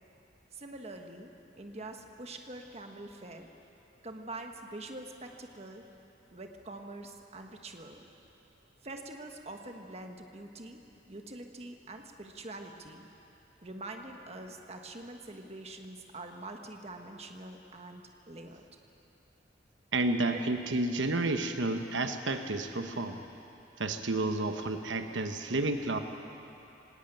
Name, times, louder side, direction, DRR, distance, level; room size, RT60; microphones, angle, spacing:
voice 1, 0.5-1.3 1.6-3.5 4.0-5.8 6.3-8.0 8.8-10.8 11.1-13.1 13.6-18.6, right 2 dB, 35° right, 4 dB, 1.4 m, -45 dB
voice 2, 19.9-23.2 23.8-26.0, right 2 dB, 90° right, 7 dB, 1.1 m, -31 dB
19.5 x 18.0 x 9.1 m, 2.9 s
head